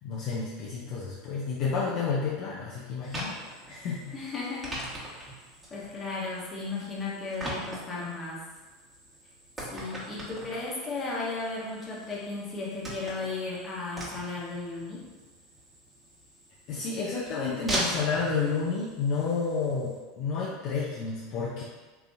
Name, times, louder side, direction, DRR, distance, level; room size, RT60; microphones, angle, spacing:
voice 1, 0.0-3.3 3.7-4.2 16.7-21.6, left 5 dB, 55° left, -6 dB, 0.6 m, -30 dB
sound 1, 3.0-20.0, right 1 dB, 15° right, 1.3 m, -41 dB
voice 2, 4.1-4.8 5.0-5.3 5.7-8.5 9.7-15.1, left 3 dB, 30° left, -4 dB, 1.1 m, -35 dB
3.8 x 2.8 x 2.6 m, 1.3 s
hypercardioid pair, 90°, 0 cm